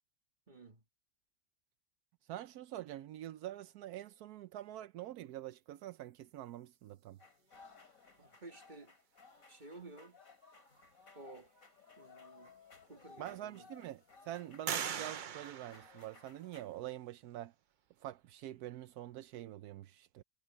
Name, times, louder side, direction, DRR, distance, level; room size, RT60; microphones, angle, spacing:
voice 1, 0.5-0.8 8.2-8.9 9.5-10.2 11.1-11.5 12.0-12.5 12.8-13.7 14.6-14.7, right 2 dB, 30° right, 1.7 m, -53 dB
voice 2, 2.3-7.2 13.2-17.5 18.0-20.2, right 13 dB, 85° right, 1.1 m, -46 dB
sound 1, 7.2-16.7, left 4 dB, 65° left, 3.4 m, -60 dB
sound 2, 12.4-12.5 13.1-13.7 14.7-16.6, right 8 dB, 60° right, 0.5 m, -41 dB
omnidirectional pair, 1.6 m